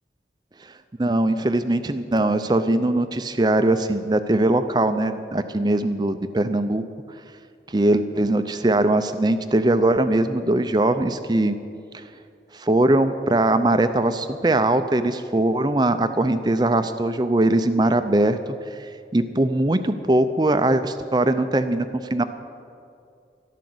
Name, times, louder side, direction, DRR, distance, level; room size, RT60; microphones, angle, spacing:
voice 1, 1.0-6.8 7.7-11.5 11.9-12.0 12.5-18.4 19.1-22.2, right 1 dB, 25° right, 10 dB, 0.5 m, -21 dB
13.5 x 12.0 x 7.8 m, 2.5 s
head